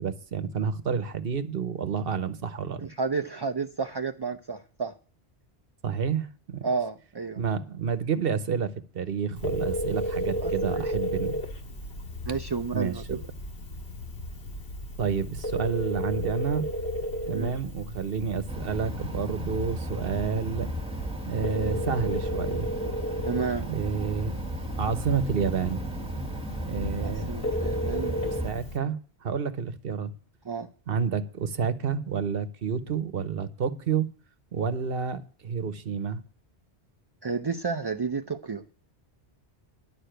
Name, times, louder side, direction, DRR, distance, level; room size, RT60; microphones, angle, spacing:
voice 1, 0.0-2.9 5.8-6.6 7.4-11.4 12.7-13.2 15.0-16.6 17.3-20.7 21.3-22.7 23.6-24.4 24.8-25.8 26.6-27.3 28.2-30.1 30.9-34.1 34.5-36.2, right 6 dB, 60° right, 1.1 m, -29 dB
voice 2, 2.8-4.9 6.6-7.4 10.3-10.8 12.3-13.2 17.3-17.5 23.3-23.7 27.0-28.2 30.5-30.7 37.2-38.6, right 5 dB, 30° right, 0.5 m, -31 dB
Telephone, 9.4-28.8, equal, 75° left, 2.1 m, -34 dB
sound 1, 18.5-28.5, equal, 5° right, 1.5 m, -35 dB
11.0 x 6.7 x 9.0 m
omnidirectional pair, 1.1 m